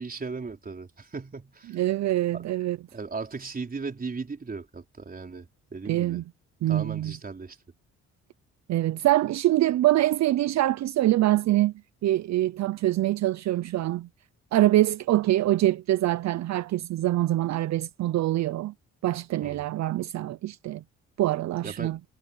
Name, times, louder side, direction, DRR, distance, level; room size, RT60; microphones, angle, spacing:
voice 1, 0.0-1.8 2.3-2.5 2.9-6.2 6.7-7.6 19.4-19.7 21.6-22.0, right 4 dB, 30° right, 4.5 m, -37 dB
voice 2, 1.7-2.8 5.9-6.2 6.6-7.2 8.7-11.7 12.0-14.1 14.5-18.7 19.0-20.8 21.2-22.0, right 15 dB, 65° right, 0.6 m, -24 dB
cardioid pair, 90°, 30 cm